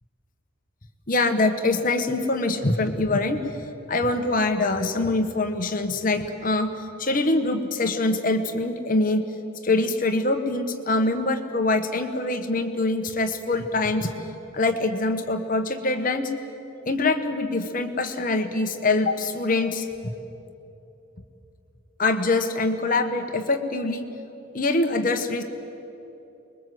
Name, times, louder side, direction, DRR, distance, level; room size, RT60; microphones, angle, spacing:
voice 1, 1.1-3.5 3.9-6.7 7.0-9.2 9.6-14.1 14.5-16.3 16.8-19.9 22.0-24.1 24.5-25.4, left 2 dB, 40° left, 7 dB, 1.3 m, -24 dB
24.0 x 21.5 x 7.8 m, 2.9 s
head